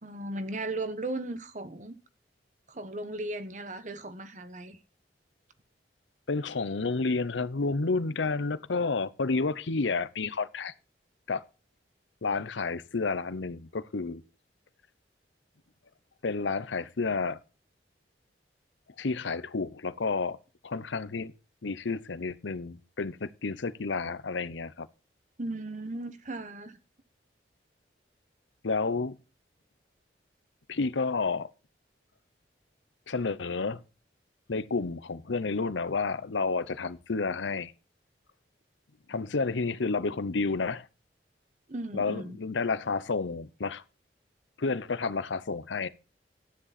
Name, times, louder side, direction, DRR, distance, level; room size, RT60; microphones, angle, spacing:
voice 1, 0.0-1.9 2.7-4.8 25.4-26.8 41.7-42.4, right 2 dB, 40° right, 1.2 m, -36 dB
voice 2, 6.3-10.7 11.3-11.4 12.2-14.2 16.2-17.4 19.0-20.4 20.6-21.3 21.6-24.9 28.6-29.2 30.7-31.5 33.1-33.8 34.5-37.7 39.1-40.9 41.9-43.8 44.6-45.9, left 4 dB, 85° left, 0.7 m, -30 dB
13.0 x 9.9 x 4.1 m
head